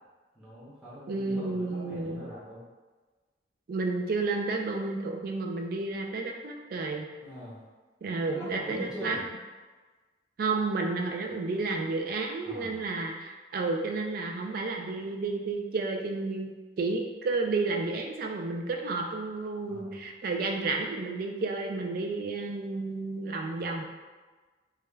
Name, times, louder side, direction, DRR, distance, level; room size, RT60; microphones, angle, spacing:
voice 1, 0.3-2.6 7.2-7.6 8.3-9.2 12.4-12.8 19.7-20.1, equal, 5° right, -10 dB, 0.6 m, -42 dB
voice 2, 1.1-2.2 3.7-7.1 8.0-9.2 10.4-23.8, right 3 dB, 50° right, 2 dB, 0.3 m, -31 dB
2.3 x 2.2 x 3.1 m, 1.3 s
head